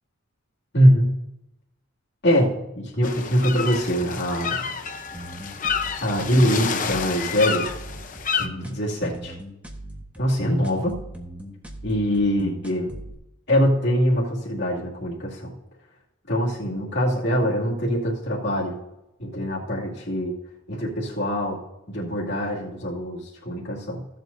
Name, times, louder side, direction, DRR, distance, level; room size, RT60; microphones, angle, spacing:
voice 1, 0.7-1.1 2.2-4.5 6.0-7.7 8.4-9.3 10.2-11.0 11.8-12.9 13.5-15.5 16.3-18.8 19.2-20.3 20.7-21.6 21.9-24.0, equal, 55° left, -5 dB, 2.5 m, -23 dB
sound 1, 3.0-8.5, left 6 dB, 40° left, 0.8 m, -29 dB
sound 2, 5.1-13.1, right 1 dB, 5° right, 1.3 m, -39 dB
16.0 x 7.8 x 2.7 m, 0.91 s
head